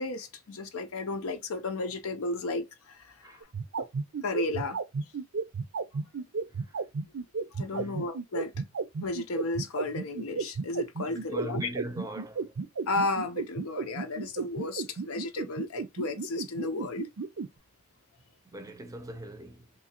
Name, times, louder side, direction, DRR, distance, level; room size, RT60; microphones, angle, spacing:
voice 1, 0.0-3.4 3.8-3.9 4.2-4.8 7.5-8.5 9.0-11.7 12.9-17.1, left 2 dB, 80° left, 0.6 m, -33 dB
sound 1, 3.4-17.5, right 4 dB, 60° right, 0.5 m, -32 dB
voice 2, 11.1-12.5 18.5-19.7, right 1 dB, 15° right, 0.6 m, -41 dB
3.7 x 2.7 x 2.9 m
head